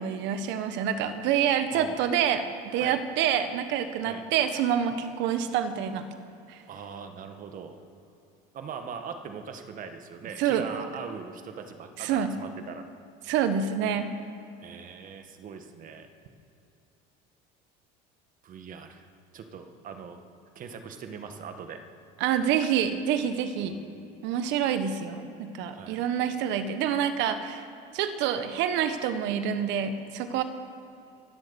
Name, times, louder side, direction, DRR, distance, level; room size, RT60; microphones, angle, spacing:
voice 1, 0.0-6.0 6.5-6.6 10.4-10.9 12.0-12.3 13.3-14.1 22.2-23.8 24.2-27.6 27.9-30.4, right 8 dB, 65° right, 9 dB, 1.3 m, -27 dB
voice 2, 6.7-7.8 8.5-12.8 14.6-16.1 18.4-19.1 19.3-20.2 20.5-21.8 25.7-26.0, right 6 dB, 45° right, 7 dB, 1.6 m, -41 dB
23.0 x 8.0 x 7.1 m, 2.7 s
supercardioid pair, 115°, 20 cm